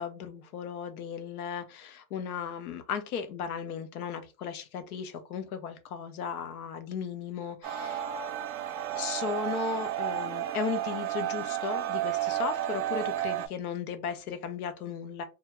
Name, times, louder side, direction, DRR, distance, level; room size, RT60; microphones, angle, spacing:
voice 1, 0.0-8.0 8.9-15.2, left 6 dB, 85° left, 0.7 m, -36 dB
sound 1, 7.6-13.5, right 12 dB, 70° right, 0.6 m, -32 dB
2.3 x 2.1 x 2.9 m
hypercardioid pair, 115°, 43 cm